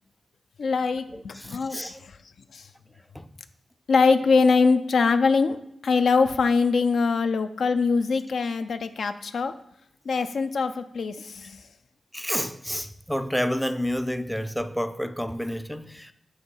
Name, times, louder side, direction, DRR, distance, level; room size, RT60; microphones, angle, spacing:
voice 1, 0.6-2.2 2.5-2.7 3.9-5.6 5.8-9.5 10.1-11.6, left 4 dB, 70° left, 0.3 m, -23 dB
voice 2, 1.1-2.0 3.1-3.4 12.1-16.1, equal, 5° left, 0.4 m, -30 dB
7.8 x 2.9 x 5.5 m
cardioid pair, 70°, 0 cm